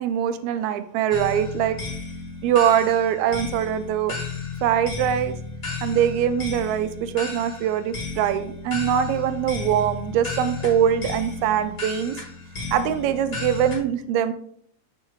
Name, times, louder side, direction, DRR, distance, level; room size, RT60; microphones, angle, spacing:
voice 1, 0.0-1.8 2.4-4.1 4.6-5.4 5.8-12.2 12.7-14.3, right 9 dB, 80° right, 11 dB, 1.8 m, -23 dB
sound 1, 1.1-13.8, left 4 dB, 30° left, 1.1 m, -34 dB
6.8 x 5.5 x 3.1 m, 0.63 s
omnidirectional pair, 3.4 m